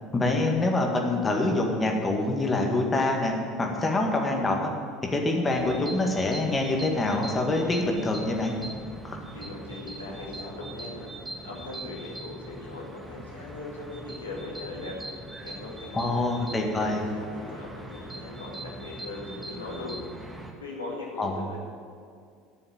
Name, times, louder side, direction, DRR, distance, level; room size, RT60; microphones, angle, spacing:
voice 1, 0.1-3.3 3.6-4.7 5.1-8.5 9.0-9.2 15.9-17.0 21.2-21.5, left 2 dB, 25° left, 1 dB, 2.0 m, -25 dB
sound 1, 5.5-20.5, right 1 dB, 15° right, 1.6 m, -41 dB
voice 2, 9.3-11.1 11.4-15.0 15.4-20.0 20.6-21.6, left 3 dB, 85° left, -3 dB, 2.5 m, -39 dB
10.5 x 6.9 x 9.1 m, 2.2 s
figure-of-eight pair, 70°, 0 cm